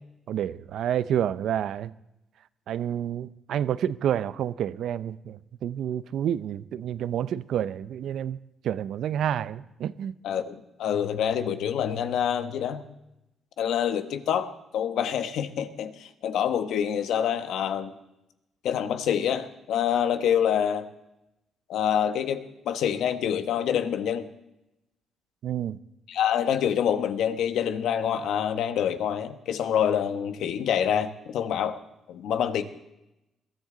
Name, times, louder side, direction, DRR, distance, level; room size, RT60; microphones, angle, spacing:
voice 1, 0.3-1.9 2.7-8.4 8.6-10.1 25.4-25.8, right 10 dB, 75° right, 0.6 m, -29 dB
voice 2, 10.2-12.8 13.6-17.9 18.6-20.9 21.7-24.3 26.1-31.8 32.1-32.6, left 9 dB, 80° left, 1.2 m, -26 dB
21.5 x 13.5 x 3.9 m
cardioid pair, 90°, 0 cm